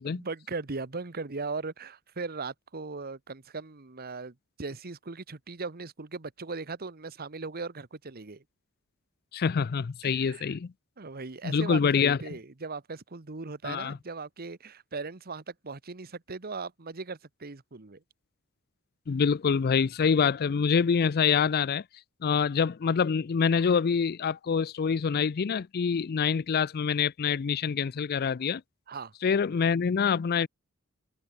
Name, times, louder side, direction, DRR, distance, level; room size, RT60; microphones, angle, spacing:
voice 1, 0.0-8.4 10.0-10.5 11.0-18.0 28.9-29.1, right 4 dB, 45° right, 1.2 m, -38 dB
voice 2, 9.3-10.7 11.4-12.2 13.6-14.0 19.1-21.8 22.2-28.6 29.2-30.5, left 6 dB, 45° left, 0.4 m, -26 dB
head